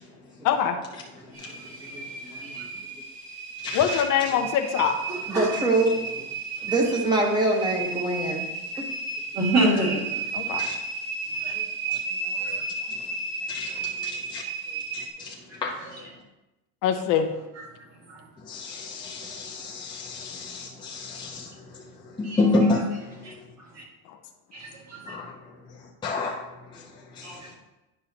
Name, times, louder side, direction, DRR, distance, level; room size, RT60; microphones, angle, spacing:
voice 1, 0.4-0.8 3.7-5.0 10.3-10.6 16.8-17.3 24.1-24.2, left 8 dB, 55° left, 4 dB, 0.7 m, -23 dB
sound 1, 1.3-15.1, right 4 dB, 60° right, 1.6 m, -33 dB
voice 2, 2.3-2.6 5.3-5.9 6.6-8.4 11.5-11.6 12.2-12.4 13.9-14.0, right 2 dB, 10° right, 1 dB, 1.0 m, -24 dB
voice 3, 3.6-4.0 10.6-10.7 13.5-13.7 14.0-14.4 15.2-15.3 15.6-15.8 18.5-21.5 22.2-22.8 25.1-25.3 26.0-26.3 27.2-27.3, left 3 dB, 10° left, -3 dB, 0.5 m, -28 dB
voice 4, 9.4-10.0 11.4-11.5 12.4-12.6 22.2-22.4 23.3-23.4 24.5-25.0 27.2-27.4, right 1 dB, 40° right, -3 dB, 2.1 m, -25 dB
9.7 x 5.4 x 2.8 m, 1.0 s
cardioid pair, 160°, 38 cm